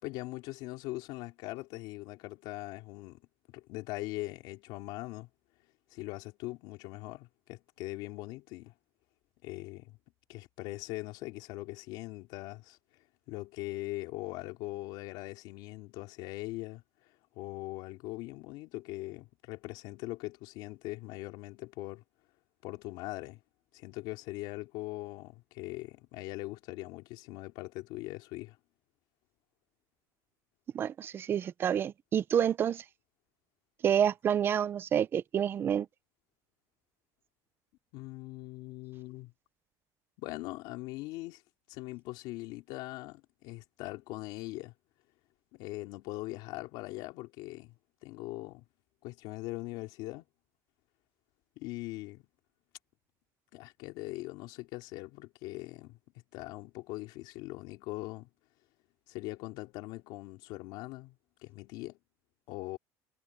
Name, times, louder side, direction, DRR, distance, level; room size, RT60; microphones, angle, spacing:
voice 1, 0.0-3.2 3.5-5.3 5.9-8.7 9.4-10.0 10.3-12.8 13.3-16.8 17.3-22.0 22.6-23.4 23.7-28.6 37.9-39.3 40.2-41.4 41.7-44.7 45.5-47.7 48.0-48.6 49.0-50.2 51.6-52.2 53.5-56.0 56.3-58.3 59.1-61.1 61.4-62.0 62.5-62.8, left 19 dB, 65° left, 3.4 m, -41 dB
voice 2, 30.7-32.8 33.8-35.9, right 9 dB, 25° right, 0.5 m, -28 dB
cardioid pair, 165°, 8 cm